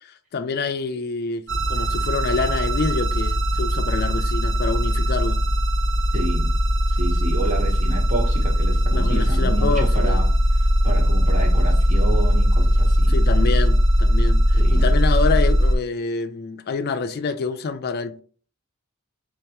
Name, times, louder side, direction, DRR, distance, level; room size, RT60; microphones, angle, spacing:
voice 1, 0.0-5.4 8.9-10.2 13.1-18.2, left 4 dB, 50° left, 0.4 m, -27 dB
sound 1, 1.5-15.7, equal, 60° right, 0.8 m, -19 dB
voice 2, 6.1-6.5 6.9-10.3 10.8-13.1 14.5-14.9, right 1 dB, 35° right, 1.1 m, -29 dB
3.8 x 3.4 x 2.9 m
head